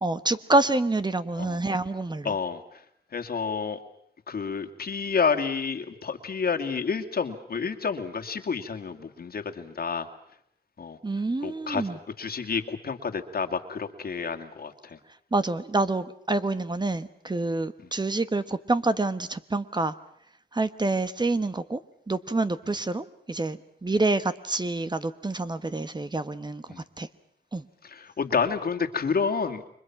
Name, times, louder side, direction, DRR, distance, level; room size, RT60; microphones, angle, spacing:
voice 1, 0.0-2.3 11.0-11.9 15.3-19.9 20.5-21.8 22.1-26.6 27.0-27.1 27.5-27.6, right 2 dB, 25° right, 12 dB, 1.2 m, -27 dB
voice 2, 2.2-2.8 3.1-3.8 4.3-10.1 10.8-11.0 11.4-11.9 12.2-15.0 26.7-26.8 27.8-29.7, left 5 dB, 60° left, 6 dB, 2.2 m, -29 dB
29.5 x 23.5 x 6.0 m, 0.69 s
cardioid pair, 75°, 18 cm